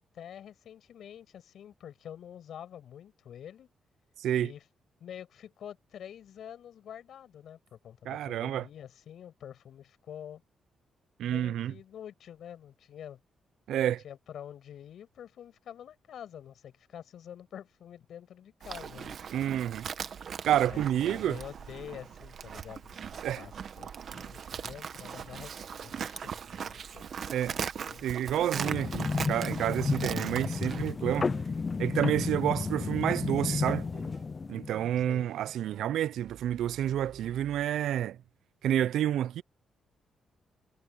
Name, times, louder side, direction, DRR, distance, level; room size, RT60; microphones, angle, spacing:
voice 1, 0.0-3.7 4.4-4.6 5.0-10.4 11.2-13.2 13.8-19.2 20.6-23.0 23.4-28.6 35.1-35.3, left 9 dB, 60° left, 6.3 m, -47 dB
voice 2, 4.2-4.5 8.1-8.6 11.2-11.7 13.7-14.0 19.3-19.9 20.4-21.4 23.2-23.4 27.3-27.6 28.0-31.3 31.8-33.9 34.5-38.2 38.6-39.4, right 11 dB, 90° right, 0.5 m, -29 dB
Livestock farm animals working animals, 18.6-30.9, right 7 dB, 45° right, 1.2 m, -39 dB
sound 1, 28.6-35.1, left 4 dB, 25° left, 0.4 m, -32 dB
sound 2, 30.6-31.4 32.2-34.2 34.6-37.7, right 9 dB, 65° right, 3.9 m, -52 dB
wide cardioid pair, 170°, 0 cm